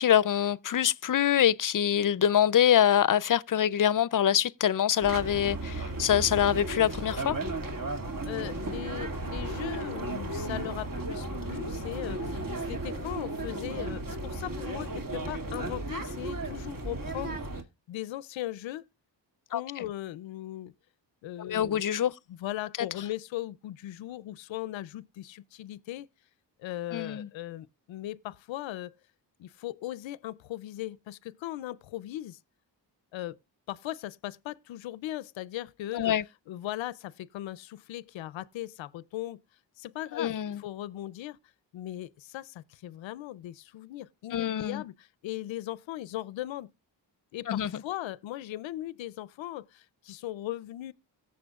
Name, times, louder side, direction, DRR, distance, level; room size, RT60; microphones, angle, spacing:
voice 1, 0.0-7.4 19.5-19.6 21.4-22.1 26.9-27.3 35.9-36.2 40.1-40.6 44.3-44.8 47.5-47.8, left 10 dB, 45° left, 0.6 m, -25 dB
sound 1, 5.0-17.6, right 2 dB, 45° right, 2.3 m, -35 dB
voice 2, 8.2-17.4 17.9-18.9 19.5-20.7 21.2-21.8 22.3-26.1 26.6-28.9 29.4-32.4 33.1-33.4 33.7-36.1 36.5-39.4 39.8-41.4 41.7-46.7 47.3-50.9, left 14 dB, 85° left, 0.6 m, -38 dB
17.5 x 7.3 x 2.4 m
cardioid pair, 65°, 44 cm